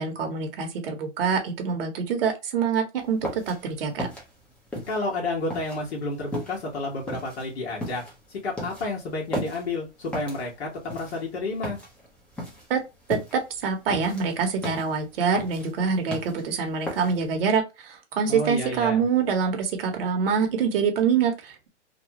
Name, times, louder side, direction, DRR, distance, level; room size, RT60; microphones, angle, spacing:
voice 1, 0.0-4.1 12.7-12.8 13.1-21.7, right 6 dB, 55° right, 4 dB, 1.0 m, -25 dB
sound 1, 3.0-17.4, equal, 5° left, 0.7 m, -37 dB
voice 2, 4.9-8.0 8.3-11.8 18.3-19.1, left 2 dB, 65° left, -2 dB, 1.3 m, -30 dB
2.9 x 2.3 x 2.8 m, 0.26 s
hypercardioid pair, 130°, 35 cm